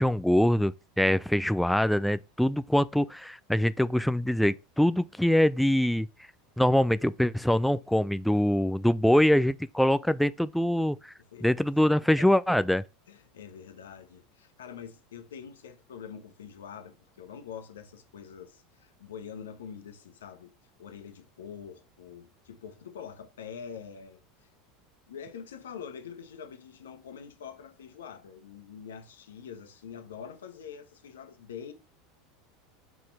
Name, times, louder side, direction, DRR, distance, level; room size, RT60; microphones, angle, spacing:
voice 1, 0.0-6.1 6.6-11.1 11.4-12.8, left 1 dB, ahead, 0.3 m, -24 dB
voice 2, 13.1-20.5 20.8-24.5 25.1-31.7, left 7 dB, 80° left, 1.1 m, -45 dB
4.8 x 4.3 x 4.7 m
hypercardioid pair, 85°, 0 cm